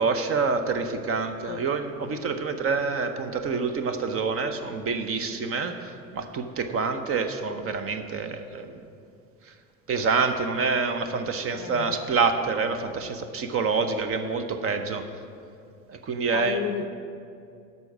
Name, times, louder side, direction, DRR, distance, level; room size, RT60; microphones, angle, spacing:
voice 1, 0.0-8.8 9.9-15.0 15.9-16.6, right 4 dB, 30° right, 8 dB, 0.8 m, -27 dB
voice 2, 11.5-12.0 16.3-16.9, left 9 dB, 40° left, 10 dB, 0.6 m, -32 dB
12.5 x 5.6 x 5.9 m, 2.4 s
figure-of-eight pair, 75°, 43 cm